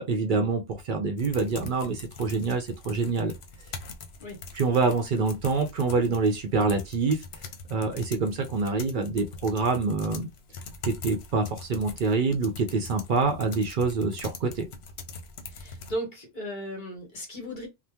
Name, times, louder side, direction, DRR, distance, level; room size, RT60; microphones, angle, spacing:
voice 1, 0.0-3.3 4.5-7.2 7.7-10.3 10.8-14.7, right 4 dB, 60° right, 0.7 m, -26 dB
sound 1, 1.2-15.9, left 4 dB, 80° left, 0.9 m, -43 dB
voice 2, 15.5-17.7, equal, 50° left, 1.2 m, -36 dB
2.8 x 2.1 x 3.4 m
omnidirectional pair, 1.1 m